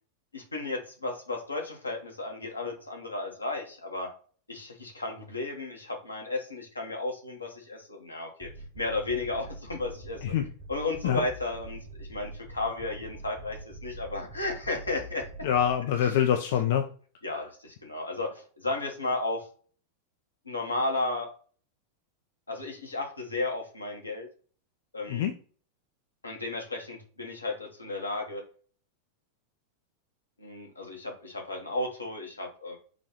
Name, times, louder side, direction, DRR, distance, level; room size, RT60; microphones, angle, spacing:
voice 1, 0.3-4.1 4.5-8.5 8.8-10.2 10.7-15.3 17.2-19.5 20.5-21.3 22.5-24.3 24.9-25.2 26.2-28.4 30.4-32.8, left 2 dB, 80° left, 2 dB, 0.9 m, -34 dB
sound 1, 8.4-15.8, right 2 dB, 30° right, 1.1 m, -44 dB
voice 2, 15.4-16.9 17.3-17.4 25.1-25.3, left 9 dB, 50° left, 5 dB, 0.3 m, -25 dB
4.0 x 2.3 x 3.0 m, 0.41 s
figure-of-eight pair, 90°, 0 cm